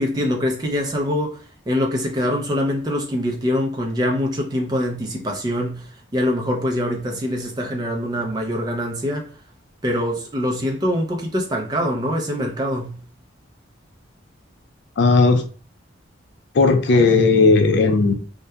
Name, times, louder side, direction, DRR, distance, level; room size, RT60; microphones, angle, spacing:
voice 1, 0.0-9.3 9.8-13.0, equal, 20° right, 0.4 m, -24 dB
voice 2, 15.0-15.5 16.5-18.1, left 3 dB, 55° left, 0.3 m, -15 dB
2.7 x 2.1 x 2.2 m
head